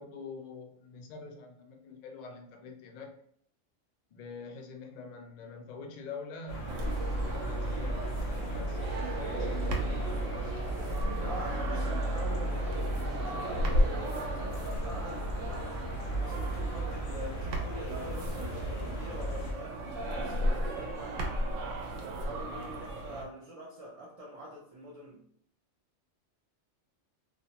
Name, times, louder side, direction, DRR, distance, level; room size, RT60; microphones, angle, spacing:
voice 1, 0.0-3.2 4.1-6.7 7.1-10.6, left 4 dB, 65° left, 2 dB, 0.4 m, -45 dB
sound 1, 6.5-19.5, right 1 dB, 85° left, 1.0 m, -35 dB
sound 2, 6.7-23.2, right 1 dB, 90° right, 0.9 m, -35 dB
voice 2, 11.0-15.7 16.2-21.4 22.0-25.3, right 1 dB, 60° right, -5 dB, 0.3 m, -45 dB
2.5 x 2.1 x 2.8 m, 0.64 s
omnidirectional pair, 1.2 m